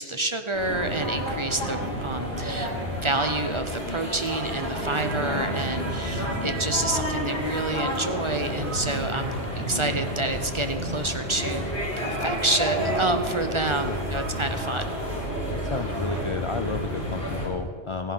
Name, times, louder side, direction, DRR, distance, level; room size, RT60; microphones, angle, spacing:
voice 1, 0.0-2.7 3.0-11.7 12.0-15.0, right 2 dB, 30° right, 7 dB, 0.7 m, -28 dB
sound 1, 0.5-17.5, equal, 65° left, 3.9 m, -30 dB
voice 2, 15.5-18.1, left 4 dB, 50° left, 9 dB, 0.3 m, -32 dB
15.0 x 11.0 x 5.7 m, 2.3 s
omnidirectional pair, 1.1 m